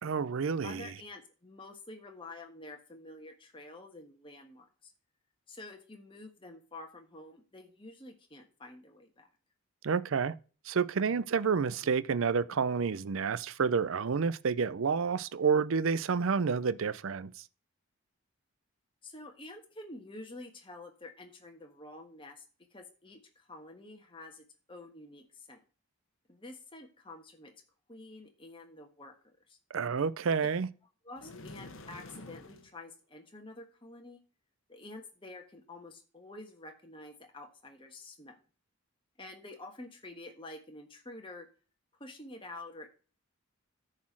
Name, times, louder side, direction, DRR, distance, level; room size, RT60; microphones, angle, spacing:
voice 1, 0.0-0.9 9.8-10.3 10.7-17.3 29.7-30.7, right 5 dB, 65° right, 0.5 m, -29 dB
voice 2, 0.6-4.9 5.5-9.3 19.0-22.4 22.7-25.6 26.3-27.5 27.9-29.6 31.0-34.2 34.7-38.4 39.2-41.5 42.0-42.9, left 2 dB, 25° left, 1.4 m, -49 dB
sound 1, 31.2-32.7, left 2 dB, 65° left, 1.1 m, -48 dB
9.9 x 4.3 x 7.3 m
head